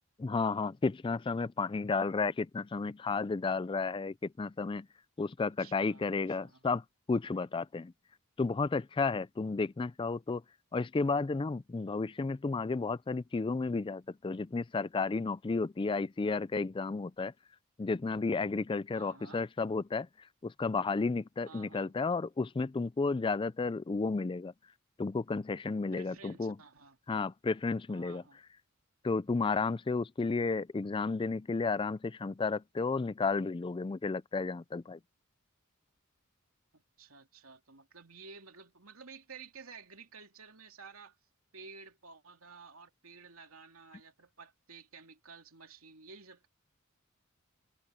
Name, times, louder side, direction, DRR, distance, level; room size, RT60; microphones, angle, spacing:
voice 1, 0.2-4.9 5.2-7.9 8.4-10.4 10.7-17.3 17.8-20.1 20.4-24.5 25.0-26.6 27.1-28.2 29.0-35.0, left 4 dB, 25° left, 0.4 m, -32 dB
voice 2, 5.3-6.7 18.9-19.4 21.4-21.9 25.9-27.0 27.9-28.4 36.7-41.2 41.5-46.5, right 5 dB, 75° right, 3.0 m, -53 dB
head